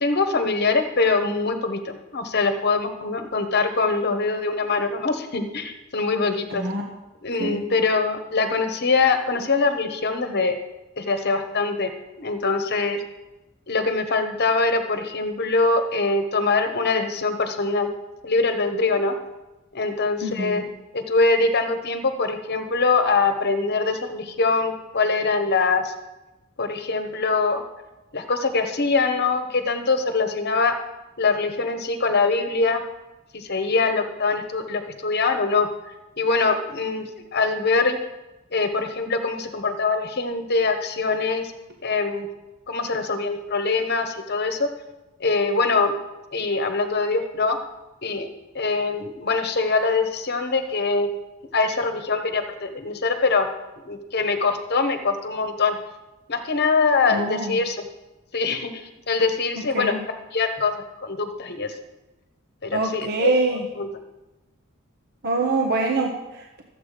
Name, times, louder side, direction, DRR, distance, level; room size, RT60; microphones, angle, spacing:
voice 1, 0.0-6.6 7.2-10.5 11.0-11.9 12.2-13.0 13.7-17.9 18.2-19.1 19.7-20.7 20.9-25.9 26.6-27.6 28.1-30.7 31.2-32.8 33.3-35.7 36.2-38.0 38.5-41.5 41.8-42.3 42.7-44.7 45.2-45.9 46.3-47.6 48.0-48.3 48.5-51.1 51.5-53.5 53.8-55.8 56.3-57.8 58.3-59.9 60.3-60.7 61.0-61.7 62.6-63.3 63.8-63.9, left 4 dB, 50° left, 7 dB, 1.1 m, -23 dB
voice 2, 6.5-6.8 7.4-7.6 20.2-20.6 57.1-57.6 59.7-60.0 62.7-63.6 65.2-66.6, right 2 dB, 50° right, 1 dB, 1.2 m, -25 dB
13.5 x 8.1 x 5.0 m, 1.0 s
head